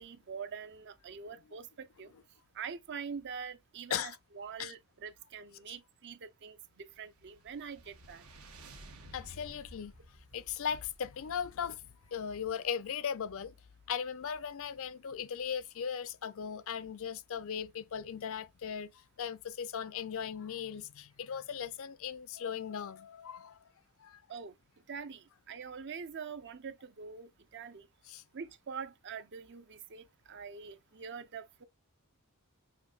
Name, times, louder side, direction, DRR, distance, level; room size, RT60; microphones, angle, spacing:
voice 1, 0.0-2.1 2.5-8.2 24.3-24.5 24.9-27.9 28.3-31.6, right 6 dB, 55° right, 0.6 m, -44 dB
sound 1, 6.8-12.3, right 1 dB, 85° right, 1.2 m, -55 dB
voice 2, 9.1-9.9 10.3-11.8 12.1-13.5 13.9-23.7 24.0-24.2 28.1-28.2, left 7 dB, 65° left, 0.4 m, -38 dB
6.5 x 2.9 x 2.4 m
head